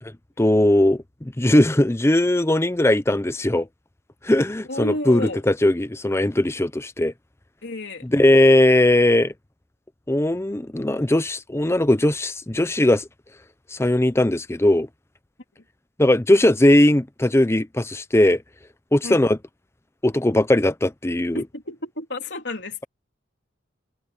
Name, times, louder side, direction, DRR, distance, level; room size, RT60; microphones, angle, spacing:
voice 1, 0.4-3.7 4.2-7.1 8.1-9.3 10.1-13.1 13.7-14.9 16.0-18.4 18.9-19.4 20.0-21.4, left 1 dB, 15° left, 0.7 m, -19 dB
voice 2, 4.7-5.4 7.6-8.1 15.5-15.6 19.0-19.2 21.3-22.9, left 1 dB, 65° left, 3.4 m, -31 dB
head